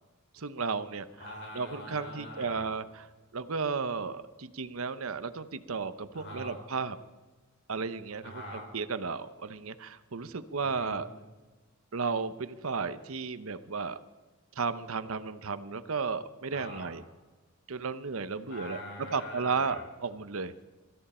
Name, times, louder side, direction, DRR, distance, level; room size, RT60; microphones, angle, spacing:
voice 1, 0.3-1.1 1.5-3.0 3.3-7.0 7.7-8.3 8.7-11.1 11.9-14.0 14.6-17.0 17.7-18.8 19.1-20.5, right 5 dB, 75° right, 13 dB, 0.8 m, -34 dB
voice 2, 1.2-2.8 6.1-6.6 8.2-8.7 10.6-11.0 16.5-16.9 18.5-19.8, left 1 dB, 55° left, 0 dB, 5.3 m, -43 dB
23.5 x 14.0 x 4.4 m, 1.3 s
head